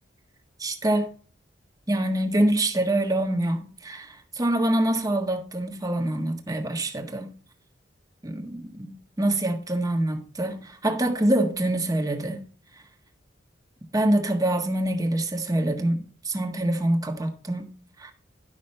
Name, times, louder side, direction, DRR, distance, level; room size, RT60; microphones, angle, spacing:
voice 1, 0.6-1.1 1.9-7.3 8.2-12.5 13.9-17.7 18.0-18.1, right 1 dB, 20° right, 1.5 m, -25 dB
11.5 x 6.1 x 4.3 m
head